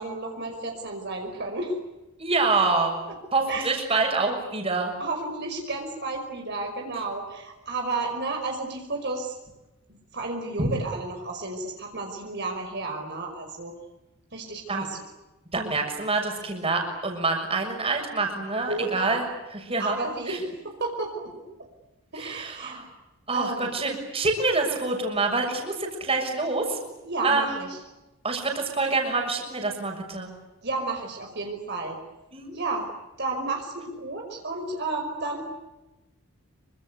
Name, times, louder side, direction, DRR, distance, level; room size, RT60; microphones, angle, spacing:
voice 1, 0.0-1.8 3.5-3.7 5.0-9.3 9.9-13.7 14.3-15.0 18.5-19.2 19.8-21.3 22.1-22.8 23.3-23.7 27.0-27.8 30.6-32.0 32.5-32.9 33.2-35.4, right 3 dB, 50° right, 2 dB, 5.5 m, -32 dB
voice 2, 2.2-3.0 3.3-4.9 10.6-10.7 14.7-14.9 15.5-19.3 19.5-20.0 20.3-20.5 22.1-22.9 23.3-26.8 27.2-27.6 28.2-30.3 32.3-32.6, right 3 dB, 25° right, 3 dB, 6.7 m, -26 dB
27.5 x 25.5 x 8.3 m, 1.0 s
head